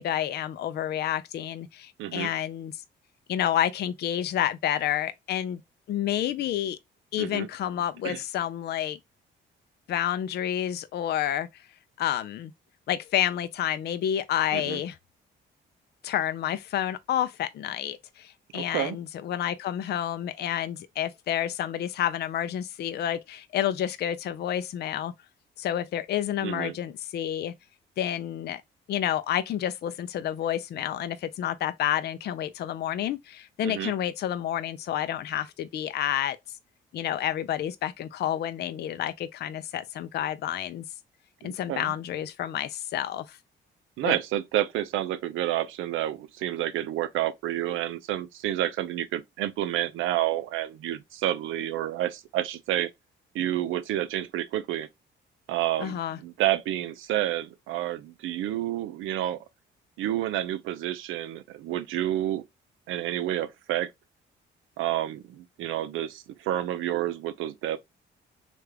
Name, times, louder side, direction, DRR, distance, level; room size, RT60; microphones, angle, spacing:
voice 1, 0.0-2.7 3.3-5.6 5.9-6.8 7.1-9.0 9.9-11.5 12.0-12.5 12.9-15.0 16.0-25.1 25.6-27.5 28.0-28.6 28.9-36.4 36.9-40.8 41.4-43.4 44.0-44.1 55.8-56.2, left 11 dB, 55° left, 0.4 m, -29 dB
voice 2, 2.0-2.3 7.2-7.5 8.0-8.2 14.5-14.8 18.5-19.0 26.4-26.7 33.6-33.9 41.4-41.9 44.0-52.9 53.3-54.9 55.5-59.4 60.0-62.4 62.9-63.9 64.8-67.8, right 13 dB, 85° right, 0.5 m, -29 dB
3.3 x 2.4 x 3.2 m
cardioid pair, 90°, 20 cm